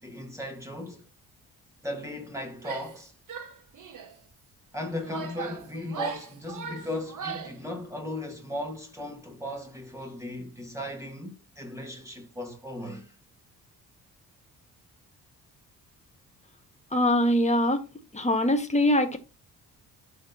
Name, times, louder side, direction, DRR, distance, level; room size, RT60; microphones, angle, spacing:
voice 1, 0.0-1.0 1.8-3.1 4.7-13.1, left 1 dB, 5° right, 2.5 m, -37 dB
Female speech woman speaking / Yell, 2.6-3.0 3.3-4.1 4.8-7.6, right 7 dB, 45° right, 1.2 m, -39 dB
voice 2, 16.9-17.8 18.1-19.2, left 1 dB, 15° left, 1.8 m, -23 dB
13.0 x 4.3 x 3.0 m
figure-of-eight pair, 40°, 45 cm